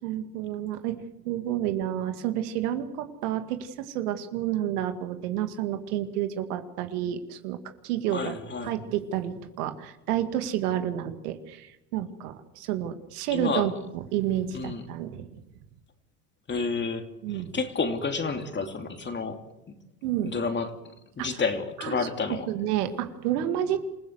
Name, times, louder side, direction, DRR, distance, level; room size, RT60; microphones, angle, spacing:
voice 1, 0.0-8.4 8.6-15.4 17.2-17.5 20.0-20.3 21.2-21.3 21.8-23.8, right 11 dB, 80° right, 8 dB, 2.2 m, -30 dB
voice 2, 8.1-8.7 13.3-13.7 14.5-14.8 16.5-17.1 17.5-19.4 20.2-20.8 21.2-22.5, left 4 dB, 25° left, 6 dB, 2.7 m, -30 dB
27.5 x 16.0 x 8.0 m, 0.91 s
supercardioid pair, 100°, 45 cm